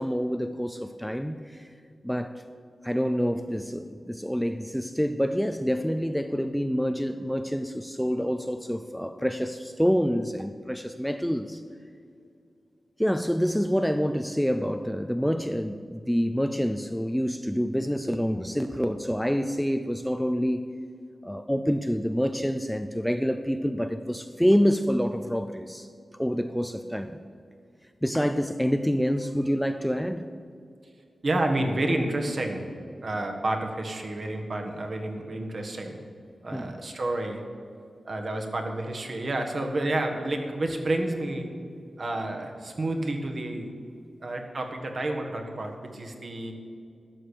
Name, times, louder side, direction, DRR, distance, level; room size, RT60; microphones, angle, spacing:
voice 1, 0.0-1.7 2.0-2.4 2.8-11.6 13.0-20.7 21.2-25.9 26.2-27.2 28.0-30.2 36.5-36.7, equal, ahead, 9 dB, 0.4 m, -27 dB
voice 2, 31.2-32.7 33.0-36.0 36.4-37.4 38.0-41.5 42.0-43.7 44.2-46.5, right 1 dB, 45° right, 3 dB, 1.6 m, -30 dB
12.5 x 6.7 x 9.9 m, 2.4 s
wide cardioid pair, 140°, 0 cm